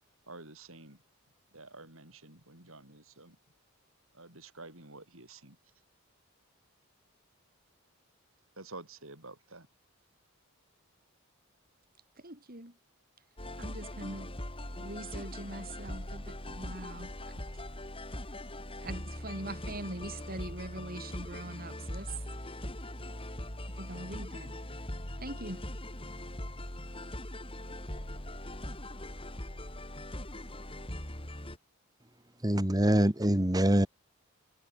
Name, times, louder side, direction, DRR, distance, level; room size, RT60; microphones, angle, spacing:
voice 1, 0.3-1.0 1.5-3.4 4.1-5.6 8.6-9.7, right 2 dB, 65° right, 7.5 m, -49 dB
voice 2, 12.2-12.7 13.6-14.3 14.7-17.4 18.8-22.1 23.7-24.7 25.2-25.6, right 1 dB, 45° right, 6.2 m, -43 dB
sound 1, 13.4-31.6, left 1 dB, 25° left, 5.2 m, -41 dB
voice 3, 32.4-33.9, right 1 dB, 15° right, 1.7 m, -24 dB
head